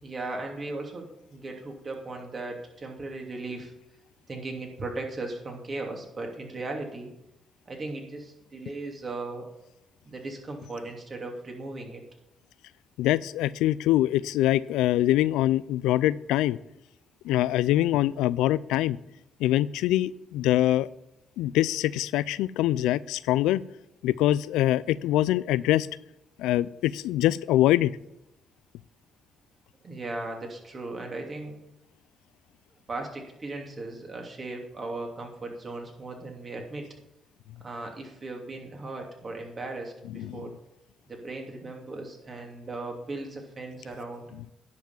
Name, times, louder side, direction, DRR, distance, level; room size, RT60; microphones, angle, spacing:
voice 1, 0.0-3.7 4.3-7.1 7.7-9.5 10.0-12.0 29.8-31.6 32.9-36.9 37.6-40.5 41.1-44.2, right 2 dB, 40° right, 2 dB, 2.8 m, -37 dB
voice 2, 13.0-16.6 17.2-19.0 19.4-20.9 21.4-23.6 24.0-25.9 26.4-27.9 40.1-40.4, left 14 dB, 90° left, 19 dB, 0.3 m, -24 dB
10.0 x 5.9 x 7.2 m, 0.89 s
supercardioid pair, 60°, 0 cm